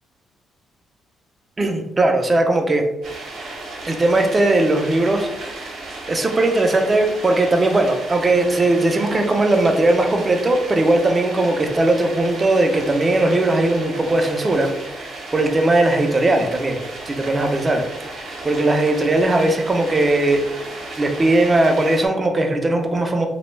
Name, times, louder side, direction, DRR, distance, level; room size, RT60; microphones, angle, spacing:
voice 1, 1.6-2.8 3.9-5.6 6.1-14.7 15.0-17.8 18.1-20.4 21.0-23.3, right 2 dB, 30° right, 4 dB, 0.4 m, -19 dB
sound 1, 3.0-22.1, right 2 dB, 65° right, 0.7 m, -34 dB
2.1 x 2.0 x 3.1 m, 0.92 s
cardioid pair, 90°, 0 cm